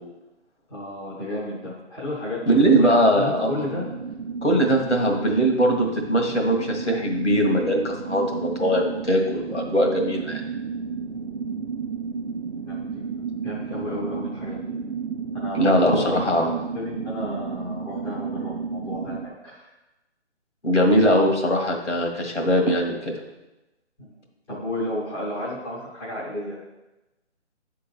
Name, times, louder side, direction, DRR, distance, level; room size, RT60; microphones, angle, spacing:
voice 1, 0.7-3.8 11.1-11.5 12.5-13.1 13.4-14.6 15.3-19.7 24.0-24.1 24.5-26.6, left 1 dB, 5° left, -8 dB, 0.8 m, -32 dB
voice 2, 2.5-3.5 4.4-10.4 15.6-16.5 20.6-23.1, equal, 80° left, 2 dB, 1.9 m, -21 dB
sound 1, 2.7-19.3, right 5 dB, 55° right, 0.6 m, -32 dB
8.3 x 3.8 x 6.0 m, 1.0 s
figure-of-eight pair, 145°, 34 cm